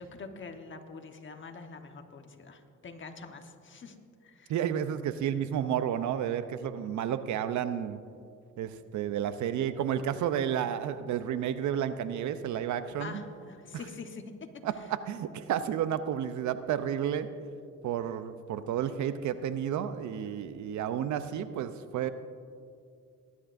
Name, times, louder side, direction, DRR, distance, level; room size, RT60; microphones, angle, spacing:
voice 1, 0.0-3.9 4.2-4.5 13.0-14.2, left 4 dB, 40° left, 5 dB, 1.2 m, -45 dB
voice 2, 4.5-8.0 8.6-13.2 14.6-17.3 17.8-22.1, right 9 dB, 70° right, 12 dB, 0.6 m, -31 dB
20.0 x 11.0 x 2.6 m, 2.4 s
cardioid pair, 90°, 30 cm